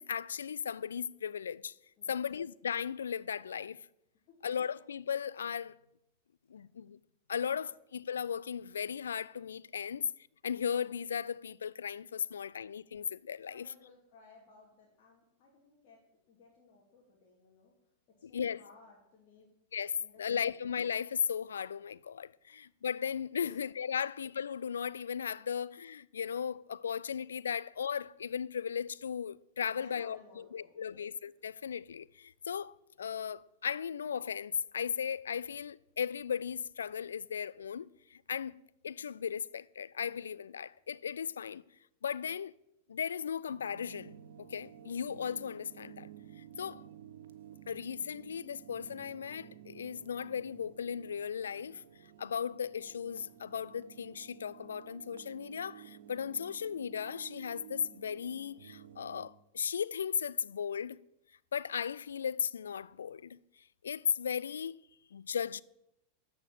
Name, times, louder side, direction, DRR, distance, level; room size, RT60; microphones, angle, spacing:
voice 1, 0.0-1.7 2.1-3.9 4.4-5.8 6.5-7.0 7.3-10.1 10.4-13.7 18.2-18.6 19.7-38.6 38.8-41.6 42.0-42.5 42.9-46.1 46.6-46.8 47.7-51.8 52.2-61.0 61.5-63.4 63.8-64.8 65.1-65.6, left 7 dB, 70° left, 0.3 m, -36 dB
voice 2, 13.5-16.0 16.3-17.7 18.3-19.5 20.0-20.2 20.5-20.6 23.4-23.6 29.6-30.8 46.6-46.9, left 4 dB, 40° left, 2.6 m, -59 dB
sound 1, 43.5-59.3, right 10 dB, 60° right, 0.9 m, -53 dB
13.0 x 5.1 x 8.3 m
figure-of-eight pair, 90°, 0 cm